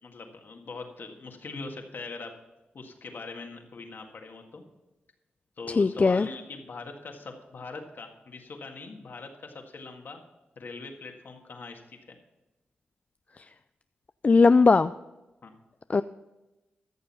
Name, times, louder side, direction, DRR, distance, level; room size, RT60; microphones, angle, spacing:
voice 1, 0.0-2.3 2.7-4.6 5.6-10.2 10.5-12.2 15.4-15.5, left 3 dB, 60° left, 3 dB, 1.8 m, -42 dB
voice 2, 5.8-6.3 14.2-14.9 15.9-16.0, left 4 dB, 40° left, 12 dB, 0.3 m, -19 dB
14.0 x 6.9 x 5.6 m, 1.0 s
cardioid pair, 60°, 4 cm